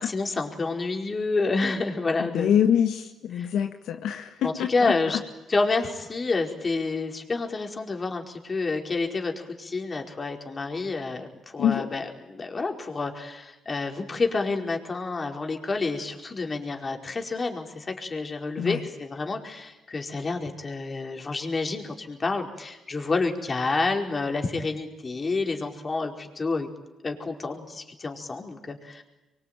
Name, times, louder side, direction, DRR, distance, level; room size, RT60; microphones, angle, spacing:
voice 1, 0.1-2.5 3.4-3.5 4.4-5.2 5.5-26.7 27.0-29.0, left 3 dB, 30° left, 3 dB, 4.7 m, -29 dB
voice 2, 2.2-5.2 11.6-11.9 18.6-18.9, left 9 dB, 80° left, 5 dB, 1.8 m, -25 dB
25.0 x 23.5 x 9.2 m, 1.0 s
cardioid pair, 90°, 0 cm